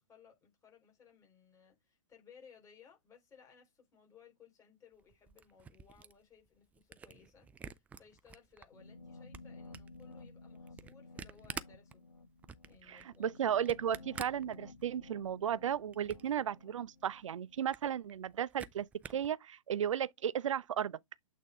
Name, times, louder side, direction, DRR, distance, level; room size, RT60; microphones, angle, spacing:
voice 1, 0.0-12.0 12.6-13.3, left 6 dB, 20° left, 4.3 m, -62 dB
Camera, 5.0-8.7 9.1-15.1 15.5-16.4 16.8-16.9 17.1-17.2 17.5-19.3, right 6 dB, 10° right, 0.3 m, -49 dB
sound 1, 8.7-17.7, left 3 dB, 85° left, 1.5 m, -54 dB
voice 2, 12.9-18.9 19.1-21.0, right 9 dB, 65° right, 0.6 m, -34 dB
8.4 x 3.6 x 3.6 m
figure-of-eight pair, 115°, 17 cm